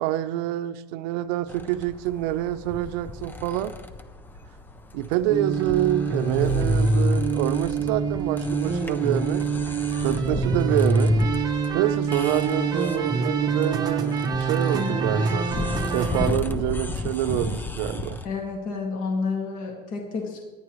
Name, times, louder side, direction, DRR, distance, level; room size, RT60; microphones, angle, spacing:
voice 1, 0.0-3.7 4.9-9.5 10.0-11.2 11.7-15.5 15.9-18.2, right 13 dB, 80° right, 11 dB, 0.8 m, -26 dB
sound 1, 1.5-18.2, left 3 dB, 10° left, 0.5 m, -35 dB
Motorcycle / Engine, 1.6-8.6, left 1 dB, 65° left, 3.7 m, -37 dB
sound 2, 5.3-16.3, right 4 dB, 20° right, 0.9 m, -25 dB
voice 2, 18.2-20.4, left 4 dB, 40° left, 1 dB, 2.0 m, -30 dB
23.0 x 10.5 x 3.1 m, 1.2 s
cardioid pair, 170°, 21 cm